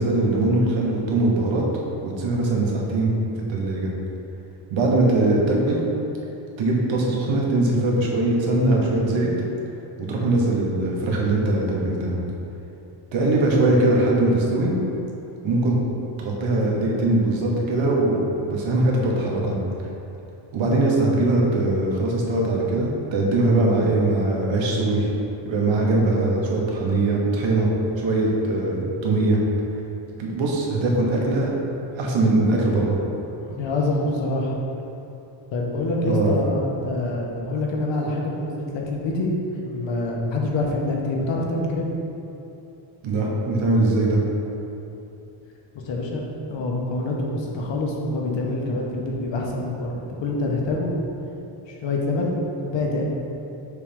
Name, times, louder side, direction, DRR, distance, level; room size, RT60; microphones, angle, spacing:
voice 1, 0.0-1.6 2.0-3.1 3.5-3.9 4.7-5.8 6.6-9.3 10.0-12.2 13.1-14.7 15.4-15.8 16.2-19.5 20.5-25.1 25.4-27.7 28.0-29.4 30.2-31.5 31.9-33.0 36.0-36.3 43.0-44.2, right 2 dB, 65° right, -2 dB, 1.4 m, -21 dB
voice 2, 33.4-34.5 35.5-39.3 39.6-41.9 45.7-46.2 46.5-50.9 51.7-52.4 52.6-53.0, left 2 dB, 60° left, -2 dB, 1.2 m, -26 dB
6.6 x 3.4 x 5.2 m, 2.9 s
cardioid pair, 120°, 49 cm